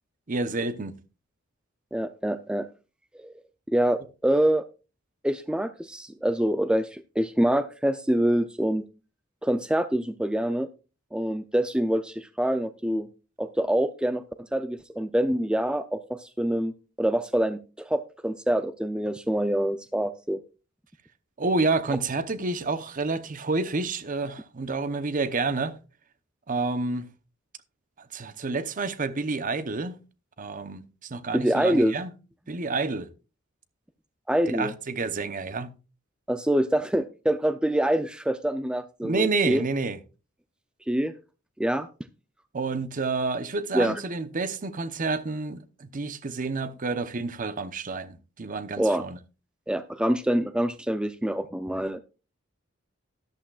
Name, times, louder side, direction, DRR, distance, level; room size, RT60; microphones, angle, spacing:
voice 1, 0.3-0.9 21.4-25.8 26.5-27.1 28.0-30.0 30.4-32.1 32.5-33.1 34.5-35.7 39.0-40.0 42.5-49.2, right 3 dB, 40° right, 0.8 m, -29 dB
voice 2, 1.9-2.7 3.1-3.3 3.7-4.6 5.2-8.9 9.4-10.7 11.1-13.1 13.4-16.7 17.0-20.4 31.3-32.0 34.3-34.7 36.3-39.6 40.9-41.1 41.6-41.9 43.7-44.0 48.8-49.0 49.7-52.0, right 1 dB, 5° right, 0.4 m, -25 dB
13.0 x 11.5 x 2.3 m
head